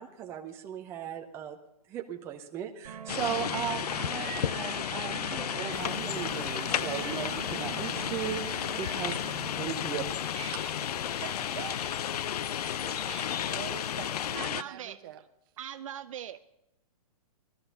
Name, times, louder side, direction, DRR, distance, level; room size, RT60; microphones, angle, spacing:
voice 1, 0.0-1.6 1.9-9.2 9.6-10.0, right 9 dB, 15° right, 3 dB, 0.6 m, -37 dB
sound 1, 2.8-9.5, right 10 dB, 85° right, 1.3 m, -42 dB
sound 2, 3.1-14.6, left 10 dB, 80° left, 0.5 m, -33 dB
sound 3, 5.7-14.4, left 8 dB, 55° left, 0.9 m, -51 dB
voice 2, 10.1-10.9 12.3-13.3 14.4-15.0 15.6-16.4, right 10 dB, 55° right, 11 dB, 0.6 m, -43 dB
voice 3, 10.8-11.8 12.6-15.2, right 12 dB, 35° right, 10 dB, 1.0 m, -45 dB
16.5 x 13.0 x 5.6 m, 0.84 s
hypercardioid pair, 165°, 20 cm